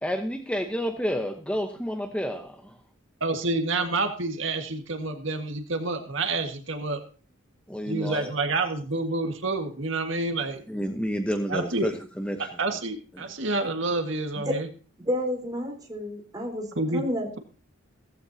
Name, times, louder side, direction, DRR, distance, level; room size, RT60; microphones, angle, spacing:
voice 1, 0.0-2.8 7.7-8.3 10.7-12.5 13.2-13.3, equal, 5° left, 5 dB, 1.0 m, -30 dB
voice 2, 3.2-7.0 7.9-10.6 11.5-11.9 12.6-14.7 16.8-17.0, right 3 dB, 65° right, 5 dB, 1.8 m, -28 dB
voice 3, 15.0-16.7 16.9-17.4, equal, 20° right, 1 dB, 4.1 m, -30 dB
16.5 x 15.0 x 2.8 m, 0.39 s
head